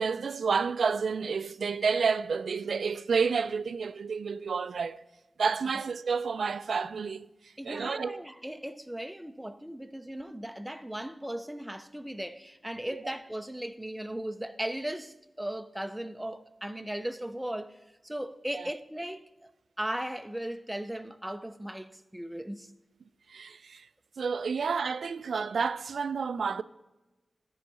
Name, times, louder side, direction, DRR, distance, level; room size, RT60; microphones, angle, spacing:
voice 1, 0.0-5.0 5.4-8.2 12.9-13.0 18.5-18.7 23.3-23.9 24.2-26.6, right 5 dB, 85° right, 0.3 m, -30 dB
voice 2, 7.6-19.5 19.8-22.7 24.6-24.7, right 1 dB, 5° right, 0.5 m, -37 dB
12.5 x 4.6 x 5.3 m
wide cardioid pair, 125°, 0 cm